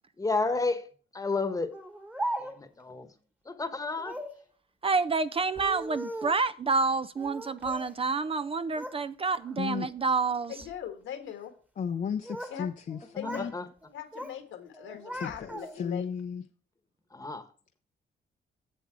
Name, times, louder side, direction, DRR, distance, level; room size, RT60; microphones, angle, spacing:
voice 1, 0.2-0.9 1.1-1.7 2.4-3.1 3.5-4.2 13.2-13.6 17.1-17.4, left 3 dB, 15° left, 1.2 m, -31 dB
Speech, 1.7-2.8 4.0-4.4 5.4-6.5 7.2-8.0 8.3-9.0 9.4-9.8 10.4-10.8 11.9-12.6 12.9-13.5 13.8-14.4 14.7-16.0, right 1 dB, 10° right, 1.3 m, -39 dB
voice 2, 4.8-10.5, right 4 dB, 30° right, 0.4 m, -28 dB
voice 3, 10.5-11.5 12.5-12.7 13.1-13.5 13.9-16.1, left 9 dB, 85° left, 1.6 m, -40 dB
voice 4, 11.8-13.5 15.1-16.4, left 7 dB, 40° left, 0.6 m, -34 dB
7.6 x 7.3 x 4.6 m
cardioid pair, 90°, 20 cm